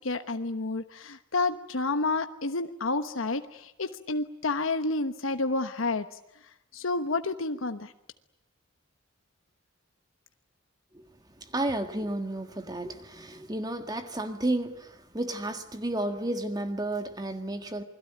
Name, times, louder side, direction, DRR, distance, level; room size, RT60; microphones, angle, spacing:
voice 1, 0.0-6.1 6.7-7.9, left 3 dB, 75° left, 9 dB, 1.1 m, -30 dB
voice 2, 11.4-17.8, right 1 dB, 20° right, 7 dB, 1.7 m, -32 dB
28.5 x 21.5 x 9.3 m, 0.84 s
head